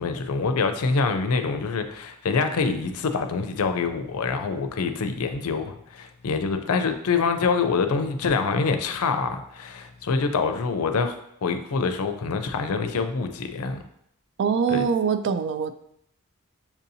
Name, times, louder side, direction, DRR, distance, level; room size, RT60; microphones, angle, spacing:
voice 1, 0.0-13.8 14.7-14.8, left 4 dB, 90° left, 8 dB, 0.5 m, -25 dB
voice 2, 14.4-15.7, right 6 dB, 55° right, 10 dB, 0.3 m, -23 dB
7.0 x 2.7 x 2.7 m, 0.73 s
head